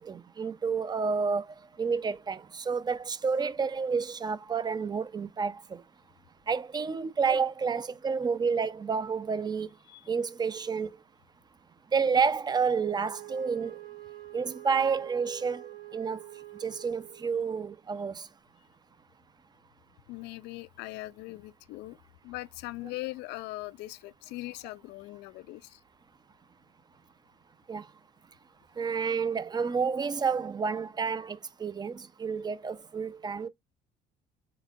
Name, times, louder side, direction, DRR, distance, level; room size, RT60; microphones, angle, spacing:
voice 1, 0.0-1.5 1.8-5.8 6.5-9.7 10.1-10.9 11.9-13.8 14.3-16.2 16.6-18.3 27.7-27.8 28.8-33.5, right 5 dB, 25° right, 0.4 m, -30 dB
Wind instrument woodwind instrument, 12.8-17.4, right 16 dB, 60° right, 0.8 m, -46 dB
voice 2, 20.1-22.0 22.2-25.8, left 19 dB, 90° left, 0.4 m, -40 dB
4.2 x 4.0 x 2.4 m
cardioid pair, 110°, 17 cm